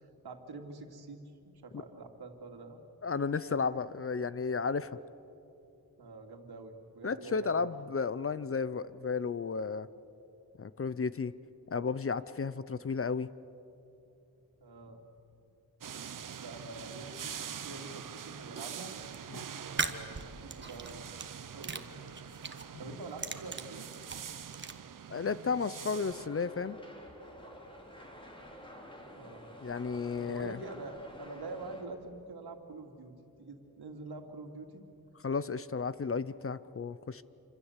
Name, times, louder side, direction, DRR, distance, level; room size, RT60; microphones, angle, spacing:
voice 1, 0.0-2.8 6.0-7.6 14.6-15.0 16.4-18.9 19.4-21.1 21.5-22.2 22.8-23.9 29.2-29.5 30.2-33.1 33.4-34.8, right 3 dB, 80° right, 5 dB, 2.7 m, -46 dB
voice 2, 3.0-5.0 7.0-9.9 10.6-11.3 11.7-13.3 19.3-19.4 25.1-26.8 29.6-30.6 35.2-37.2, left 5 dB, 35° left, 16 dB, 0.6 m, -33 dB
sound 1, 15.8-26.3, right 8 dB, 55° right, 0.8 m, -44 dB
sound 2, 18.8-19.2 19.6-21.3 21.6-22.7 23.0-24.7, right 4 dB, 30° right, 1.2 m, -38 dB
sound 3, 26.1-31.8, equal, 15° left, 3.3 m, -50 dB
27.5 x 26.0 x 8.2 m, 2.8 s
wide cardioid pair, 175°, 38 cm